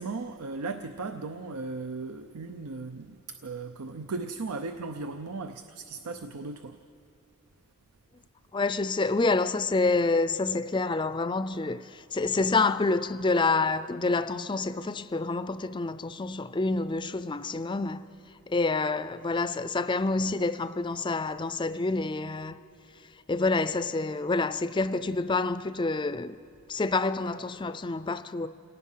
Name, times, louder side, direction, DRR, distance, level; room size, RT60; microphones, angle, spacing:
voice 1, 0.0-6.8, right 3 dB, 90° right, 0.7 m, -37 dB
voice 2, 8.5-18.0 18.5-22.6 23.3-26.3 26.7-28.5, left 3 dB, 20° left, 0.4 m, -27 dB
28.0 x 18.0 x 5.7 m
head